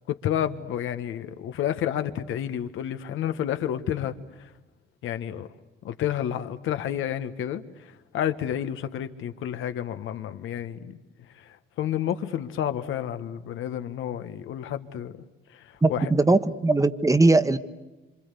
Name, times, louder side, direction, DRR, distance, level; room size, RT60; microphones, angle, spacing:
voice 1, 0.1-4.5 5.0-5.5 5.8-15.1 15.5-16.1, left 10 dB, 85° left, 1.4 m, -30 dB
voice 2, 15.8-17.6, right 2 dB, 15° right, 1.3 m, -20 dB
26.5 x 26.5 x 8.3 m
cardioid pair, 90°, 20 cm